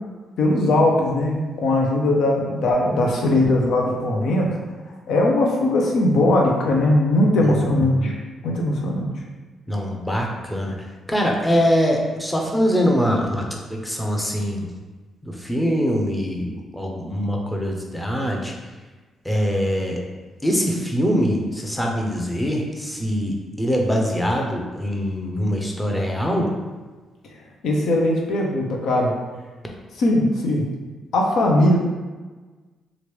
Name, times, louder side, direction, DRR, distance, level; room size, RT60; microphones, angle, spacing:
voice 1, 0.4-4.6 5.1-8.2 8.4-9.1 27.6-29.1 30.0-30.7 31.1-31.8, left 1 dB, 75° left, 0 dB, 0.7 m, -19 dB
voice 2, 7.4-8.1 9.7-14.7 15.2-18.5 19.2-20.0 20.4-26.5, equal, 5° left, 0 dB, 0.6 m, -23 dB
3.1 x 2.5 x 3.2 m, 1.3 s
cardioid pair, 100°, 0 cm